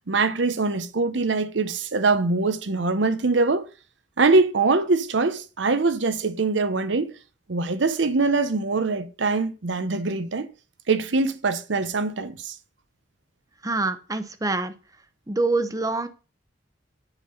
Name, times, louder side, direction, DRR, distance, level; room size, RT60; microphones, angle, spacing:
voice 1, 0.1-3.6 4.2-7.2 7.5-10.5 10.9-12.5, right 3 dB, 80° right, 0.8 m, -23 dB
voice 2, 13.6-14.7 15.3-16.1, right 3 dB, 20° right, 0.7 m, -25 dB
8.2 x 5.6 x 5.4 m
head